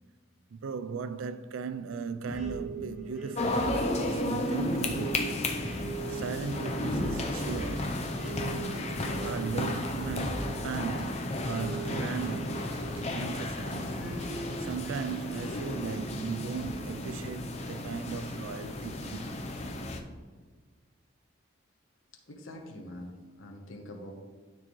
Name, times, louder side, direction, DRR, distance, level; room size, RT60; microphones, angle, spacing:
voice 1, 0.5-3.7 4.0-5.4 6.1-8.0 9.2-12.7 13.1-14.0 14.6-19.3, right 5 dB, 85° right, 0.4 m, -37 dB
sound 1, 2.3-13.4 14.0-15.5, right 2 dB, ahead, 2.2 m, -40 dB
sound 2, 3.3-20.0, left 1 dB, 35° left, 0.6 m, -33 dB
sound 3, 7.3-15.2, right 1 dB, 65° right, 1.5 m, -51 dB
voice 2, 22.3-24.1, left 1 dB, 80° left, 1.1 m, -44 dB
12.0 x 4.6 x 3.1 m
head